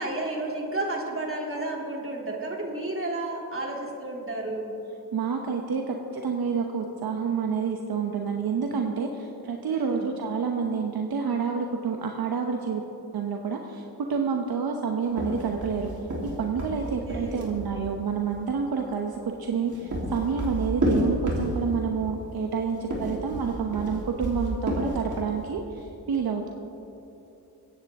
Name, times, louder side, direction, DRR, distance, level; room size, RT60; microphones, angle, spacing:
voice 1, 0.0-4.7 6.9-7.1 9.7-10.1 16.7-17.5 23.0-23.3, right 2 dB, 35° right, -1 dB, 3.0 m, -32 dB
voice 2, 5.1-12.8 13.1-15.9 16.4-26.5, right 6 dB, 65° right, 3 dB, 1.0 m, -28 dB
sound 1, 15.1-17.7 19.4-21.9 22.8-25.4, right 1 dB, 50° right, 3.5 m, -30 dB
23.0 x 9.4 x 3.6 m, 3.0 s
cardioid pair, 65°, 39 cm